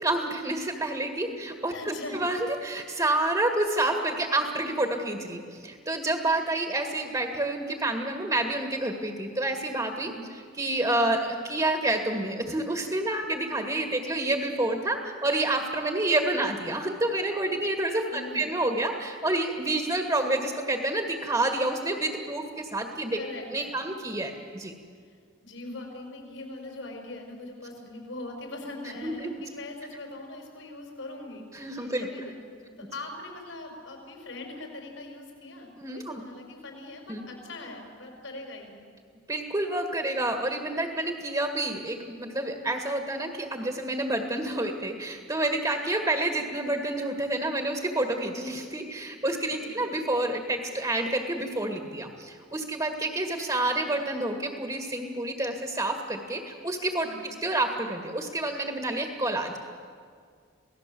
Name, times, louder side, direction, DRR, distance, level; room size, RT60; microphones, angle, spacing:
voice 1, 0.0-23.2 23.5-24.7 28.9-29.3 31.5-32.1 32.8-32.9 35.8-36.2 37.1-37.2 39.3-57.1 57.4-59.6, right 2 dB, 20° right, 3 dB, 1.9 m, -29 dB
voice 2, 1.7-2.2 10.0-10.3 18.1-18.4 23.2-23.7 25.1-25.2 25.4-38.8 49.6-49.8 57.0-57.3, left 2 dB, 80° left, 2 dB, 5.9 m, -41 dB
28.0 x 18.5 x 7.8 m, 2.1 s
head